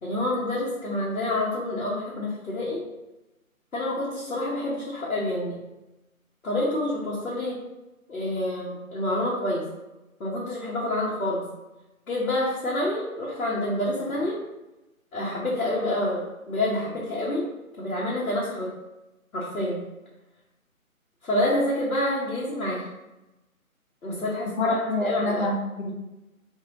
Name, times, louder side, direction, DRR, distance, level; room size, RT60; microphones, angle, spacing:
voice 1, 0.0-2.8 3.7-5.6 6.4-7.6 8.1-9.6 10.2-11.4 12.1-14.4 15.1-17.4 17.8-18.7 19.3-19.8 21.2-22.9 24.0-25.5, left 1 dB, 70° left, -7 dB, 1.2 m, -27 dB
voice 2, 24.6-25.9, left 1 dB, 50° left, -2 dB, 1.1 m, -27 dB
3.2 x 3.1 x 3.8 m, 1.0 s
figure-of-eight pair, 155°, 43 cm